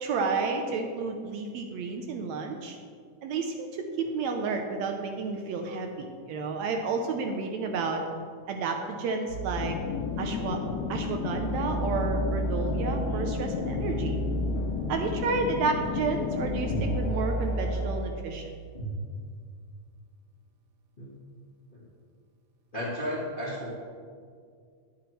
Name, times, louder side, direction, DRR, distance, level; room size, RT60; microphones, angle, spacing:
voice 1, 0.0-2.8 3.2-8.0 8.5-9.8 10.2-10.6 10.9-14.2 14.9-18.4, right 4 dB, 80° right, 4 dB, 1.7 m, -31 dB
sound 1, 9.3-17.9, right 1 dB, 65° left, 2.7 m, -33 dB
sound 2, 9.6-17.0, left 7 dB, 80° left, 1.7 m, -33 dB
voice 2, 22.7-23.7, left 1 dB, 45° left, -7 dB, 0.6 m, -34 dB
10.0 x 8.5 x 3.1 m, 2.1 s
omnidirectional pair, 3.5 m